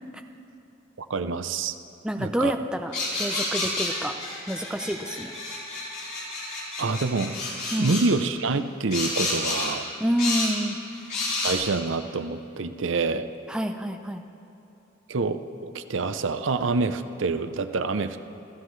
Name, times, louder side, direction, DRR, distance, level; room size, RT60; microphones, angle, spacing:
voice 1, 1.0-1.7 2.2-2.5 6.8-7.4 7.8-9.9 11.4-13.3 15.1-18.2, right 3 dB, 70° right, 10 dB, 0.6 m, -27 dB
voice 2, 2.0-2.9 3.2-4.1 4.5-5.3 7.7-8.0 10.0-10.8 13.5-14.2, equal, 5° right, 5 dB, 0.6 m, -27 dB
sound 1, 2.9-8.1 8.9-9.7 10.2-10.6 11.1-11.5, left 2 dB, 50° left, 4.4 m, -30 dB
27.0 x 15.0 x 3.2 m, 2.9 s
head